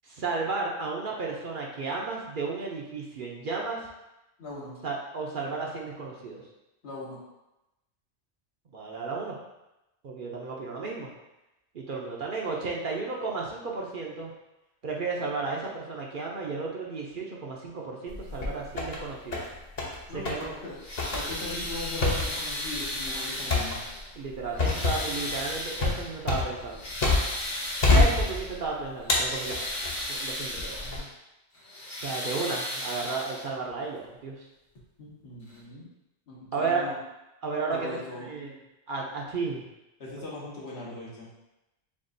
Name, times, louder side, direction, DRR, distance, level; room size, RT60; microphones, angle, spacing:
voice 1, 0.0-3.8 4.8-6.4 8.7-9.4 10.0-11.1 11.7-14.3 14.8-19.4 20.1-20.5 24.2-26.9 27.9-29.8 30.1-31.1 32.0-34.5 36.5-36.8 37.4-38.5 38.9-39.6, right 4 dB, 55° right, -2 dB, 0.7 m, -33 dB
voice 2, 4.4-4.8 6.8-7.2 20.1-20.8 21.1-23.8 35.0-35.9 36.3-37.0 37.7-38.3 40.0-41.3, left 2 dB, 70° left, -5 dB, 1.3 m, -39 dB
sound 1, 18.1-19.0 19.3-20.0 20.3-20.5 21.0-27.5 27.8-28.7 29.1-30.0 30.6-31.0, left 3 dB, 40° left, 0.8 m, -26 dB
sound 2, 20.7-24.1 24.5-26.2 26.6-28.6 29.0-31.1 31.5-33.7 34.8-34.9 35.5-35.6, left 1 dB, 90° left, 1.5 m, -35 dB
7.0 x 2.4 x 2.6 m, 0.96 s
omnidirectional pair, 1.1 m